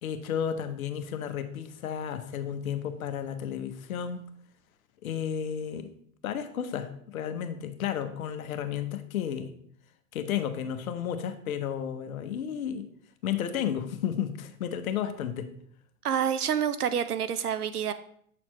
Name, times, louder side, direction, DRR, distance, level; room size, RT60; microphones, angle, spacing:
voice 1, 0.0-4.2 5.0-5.9 6.2-9.5 10.1-12.9 13.2-15.5, left 9 dB, 70° left, 9 dB, 0.8 m, -32 dB
voice 2, 16.0-17.9, right 8 dB, 90° right, 12 dB, 0.6 m, -28 dB
7.4 x 4.3 x 3.0 m, 0.65 s
hypercardioid pair, 105°, 44 cm